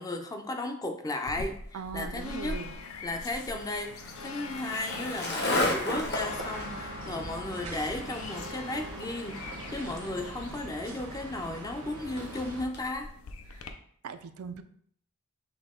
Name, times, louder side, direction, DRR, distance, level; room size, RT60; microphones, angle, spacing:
voice 1, 0.0-2.6 3.0-13.1, left 2 dB, 15° left, 4 dB, 0.4 m, -35 dB
Church Bell, 1.3-13.7, left 2 dB, 70° left, 0.5 m, -43 dB
voice 2, 1.7-2.7 14.0-14.6, right 6 dB, 75° right, 10 dB, 0.4 m, -39 dB
Skateboard, 2.3-12.8, left 1 dB, 50° left, 1.1 m, -36 dB
sound 1, 5.5-12.6, right 2 dB, 90° right, 1.0 m, -42 dB
6.1 x 2.2 x 3.6 m, 0.62 s
head